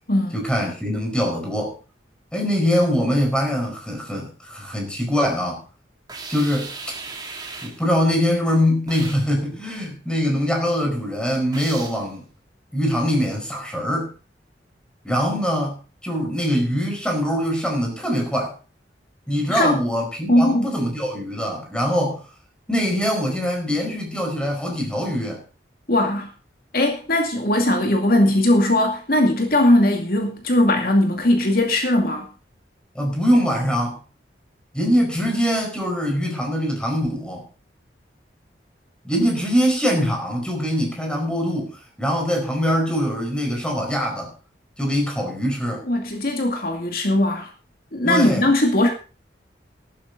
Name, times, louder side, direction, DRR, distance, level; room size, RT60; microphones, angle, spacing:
voice 1, 0.3-1.7 2.3-5.6 6.3-6.7 7.6-12.3 12.7-14.1 15.0-15.8 16.0-18.5 19.3-22.2 22.7-25.4 32.9-34.0 34.7-37.5 39.0-44.3 44.8-45.8 48.0-48.5, equal, 5° left, 2 dB, 4.9 m, -23 dB
sound 1, 6.1-7.9 8.9-9.3 11.5-12.1, right 4 dB, 25° right, 2.8 m, -36 dB
voice 2, 19.5-19.8 20.3-20.7 25.9-26.3 26.7-32.3 45.9-47.5 47.9-48.9, left 1 dB, 55° left, 2 dB, 2.4 m, -19 dB
15.0 x 12.5 x 4.0 m, 0.35 s
head